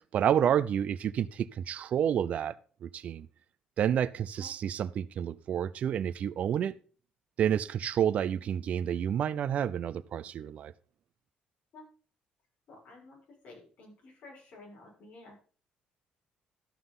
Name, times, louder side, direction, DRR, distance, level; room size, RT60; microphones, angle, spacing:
voice 1, 0.1-2.6 2.8-3.3 3.8-6.8 7.4-10.7, right 9 dB, 55° right, 0.5 m, -29 dB
voice 2, 12.7-13.2 13.4-15.3, left 2 dB, 55° left, 6.6 m, -51 dB
13.0 x 5.9 x 5.5 m
cardioid pair, 130°, 3 cm